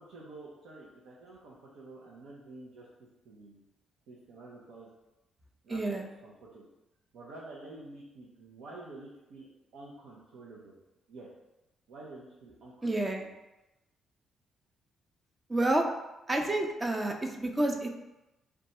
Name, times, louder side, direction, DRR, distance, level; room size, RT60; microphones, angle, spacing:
voice 1, 0.0-3.6 4.1-4.9 5.6-6.7 7.1-9.5 9.7-10.8 11.1-11.3 11.9-13.3, right 2 dB, 75° right, -5 dB, 0.6 m, -49 dB
voice 2, 5.7-6.0 12.8-13.3 15.5-15.8 16.3-17.9, right 1 dB, 25° right, 3 dB, 0.5 m, -29 dB
2.5 x 2.3 x 4.1 m, 0.98 s
supercardioid pair, 55°, 0 cm